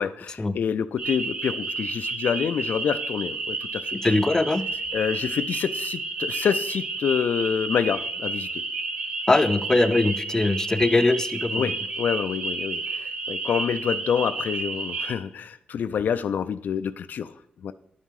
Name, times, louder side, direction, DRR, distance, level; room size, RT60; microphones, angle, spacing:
voice 1, 0.0-4.0 4.9-8.6 11.5-17.3 17.6-17.7, left 7 dB, 75° left, 11 dB, 0.3 m, -27 dB
sound 1, 1.0-15.1, right 3 dB, 45° right, 1.0 m, -31 dB
voice 2, 4.0-4.7 9.3-11.7, left 2 dB, 20° left, 10 dB, 0.5 m, -21 dB
11.5 x 5.5 x 4.7 m, 0.73 s
cardioid pair, 90°, 3 cm